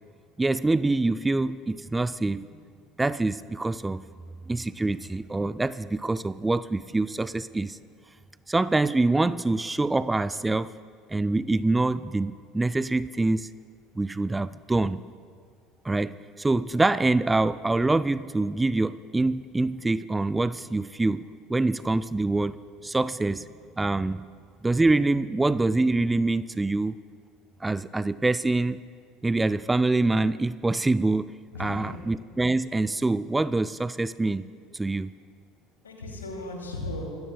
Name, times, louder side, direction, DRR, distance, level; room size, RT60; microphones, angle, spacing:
voice 1, 0.4-2.5 3.0-4.0 4.5-7.8 8.5-10.7 11.1-13.5 14.0-15.0 15.8-22.6 22.8-23.5 23.8-24.2 24.6-27.0 27.6-28.8 29.2-31.3 31.6-34.4 34.7-35.1, right 2 dB, 10° right, 16 dB, 0.3 m, -25 dB
voice 2, 31.5-32.0 35.8-37.1, left 2 dB, 75° left, 1 dB, 2.7 m, -36 dB
24.5 x 17.5 x 2.3 m, 2.1 s
figure-of-eight pair, 65°, 0 cm